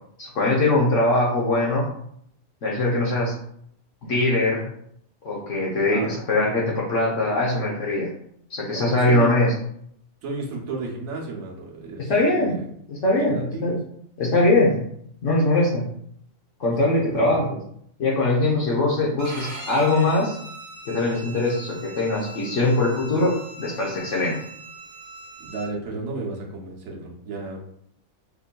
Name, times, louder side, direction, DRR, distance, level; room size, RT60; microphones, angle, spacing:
voice 1, 0.2-1.9 2.6-3.3 4.0-4.6 5.2-8.1 8.5-9.5 12.0-12.6 12.9-13.8 14.2-14.8 15.2-15.8 16.6-17.5 18.0-20.4 20.9-24.4, left 2 dB, 65° left, -3 dB, 1.1 m, -22 dB
voice 2, 8.7-9.4 10.2-12.6 13.1-13.8 16.8-17.5 25.4-27.6, right 3 dB, 70° right, -2 dB, 1.2 m, -34 dB
Bowed string instrument, 19.2-25.7, right 1 dB, 40° right, 0.8 m, -40 dB
5.3 x 2.6 x 2.2 m, 0.68 s
omnidirectional pair, 1.4 m